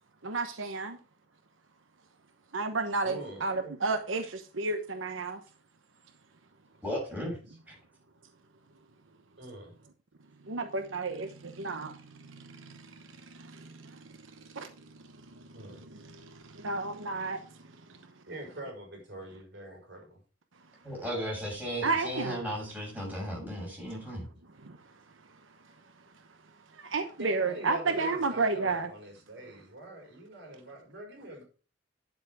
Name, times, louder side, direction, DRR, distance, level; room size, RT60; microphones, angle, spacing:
voice 1, 0.2-1.0 2.5-5.4 10.5-12.9 13.3-14.0 14.5-14.7 15.5-17.4 21.8-22.4 24.6-24.8 26.7-28.9, right 3 dB, 85° right, 7 dB, 1.0 m, -32 dB
voice 2, 3.0-3.6 7.5-7.6 9.4-9.8 15.5-15.8 18.3-20.2 27.2-31.4, right 1 dB, 60° right, 1 dB, 5.4 m, -44 dB
voice 3, 6.8-7.4 7.7-7.8 20.8-24.2, equal, 10° right, -3 dB, 6.7 m, -35 dB
10.5 x 7.3 x 4.8 m, 0.36 s
head